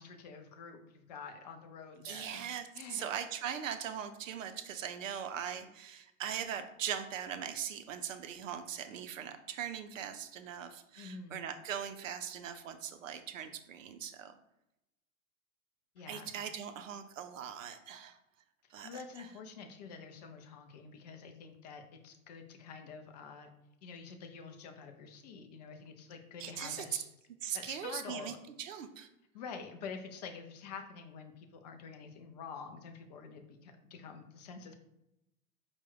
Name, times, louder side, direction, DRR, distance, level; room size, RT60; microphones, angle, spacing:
voice 1, 0.0-2.5 2.7-3.1 11.0-11.4 15.9-16.3 18.8-23.5 23.8-27.1 27.5-28.4 29.3-34.7, left 5 dB, 30° left, 6 dB, 0.4 m, -47 dB
voice 2, 2.0-14.3 16.1-18.2 18.7-19.3 26.4-26.8 27.4-29.1, right 8 dB, 60° right, 9 dB, 0.5 m, -40 dB
4.3 x 2.2 x 3.5 m, 0.87 s
figure-of-eight pair, 90°, 44 cm